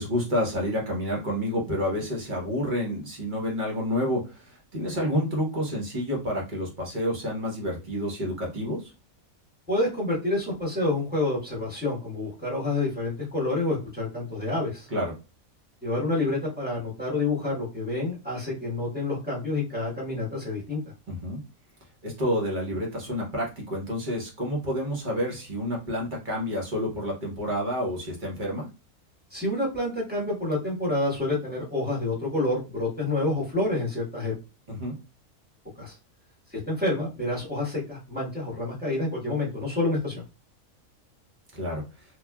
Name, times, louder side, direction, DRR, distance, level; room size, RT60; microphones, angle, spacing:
voice 1, 0.0-8.9 14.9-15.1 21.1-21.4 22.0-28.7 34.7-34.9 41.5-41.8, equal, 40° right, -2 dB, 1.0 m, -29 dB
voice 2, 9.7-14.9 15.8-20.8 29.3-34.3 35.8-36.0 36.7-40.2, left 2 dB, 10° right, -5 dB, 1.0 m, -28 dB
3.1 x 2.3 x 2.2 m, 0.30 s
omnidirectional pair, 1.5 m